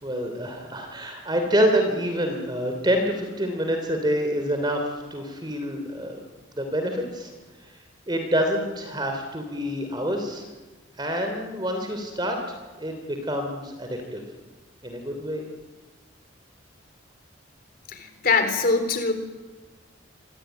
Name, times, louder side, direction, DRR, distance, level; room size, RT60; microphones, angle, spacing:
voice 1, 0.0-6.2 6.5-7.3 7.6-7.8 8.1-10.4 11.0-14.2 14.8-15.5, equal, 20° right, 4 dB, 3.1 m, -27 dB
voice 2, 17.9-19.1, left 4 dB, 45° left, 7 dB, 3.8 m, -23 dB
26.0 x 24.5 x 9.2 m, 1.3 s
head